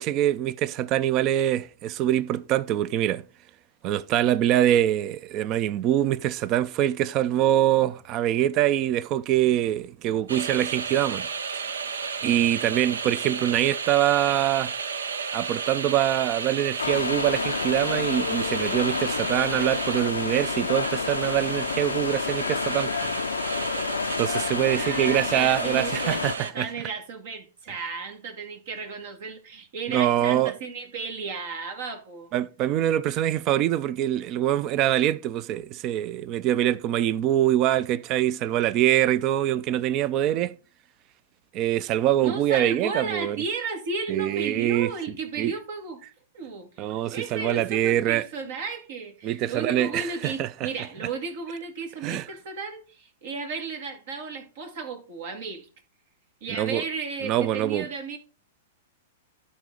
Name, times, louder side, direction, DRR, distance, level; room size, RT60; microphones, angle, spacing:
voice 1, 0.0-3.2 3.8-11.3 12.2-14.7 15.3-23.1 24.2-26.7 29.9-30.5 32.3-40.6 41.5-43.4 44.1-44.9 45.4-45.6 46.8-48.2 49.2-50.7 52.0-52.3 56.6-56.8 57.2-57.9, right 12 dB, 40° right, 0.5 m, -24 dB
sound 1, 10.3-26.5, right 5 dB, 85° right, 0.7 m, -33 dB
sound 2, 16.8-26.4, left 6 dB, 90° left, 0.4 m, -30 dB
voice 2, 24.5-32.3 42.2-46.0 46.3-55.7 56.4-58.2, right 4 dB, 65° right, 2.1 m, -34 dB
12.5 x 4.1 x 3.8 m
hypercardioid pair, 115°, 0 cm